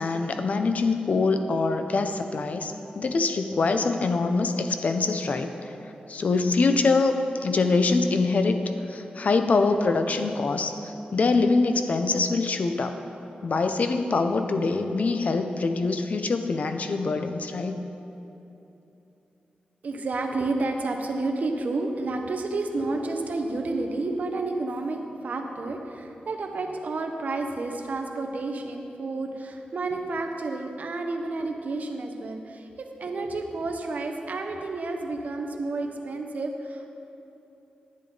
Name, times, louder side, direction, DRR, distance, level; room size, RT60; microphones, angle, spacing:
voice 1, 0.0-5.5 6.1-8.6 8.9-12.9 13.4-17.8, left 3 dB, 55° left, 7 dB, 0.6 m, -24 dB
voice 2, 19.8-36.9, right 3 dB, 60° right, 4 dB, 0.9 m, -30 dB
Bass guitar, 22.8-26.8, left 2 dB, 85° left, 1.2 m, -46 dB
10.5 x 9.7 x 4.0 m, 3.0 s
wide cardioid pair, 115°, 3 cm